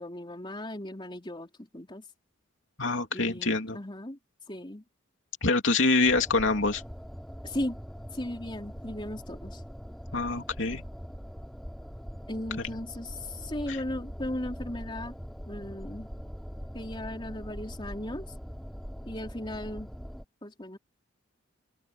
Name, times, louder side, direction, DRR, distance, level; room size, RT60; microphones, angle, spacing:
voice 1, 0.0-2.1 3.1-4.2 4.5-4.8 7.4-7.8 8.1-9.6 12.3-15.2 15.5-16.1 16.7-18.3 19.0-19.9 20.4-20.8, left 1 dB, 25° left, 3.5 m, -37 dB
voice 2, 2.8-3.8 5.4-6.8 10.1-10.8 13.7-13.8, left 3 dB, 65° left, 3.1 m, -25 dB
sound 1, 6.0-20.2, equal, ahead, 4.9 m, -42 dB
open air
head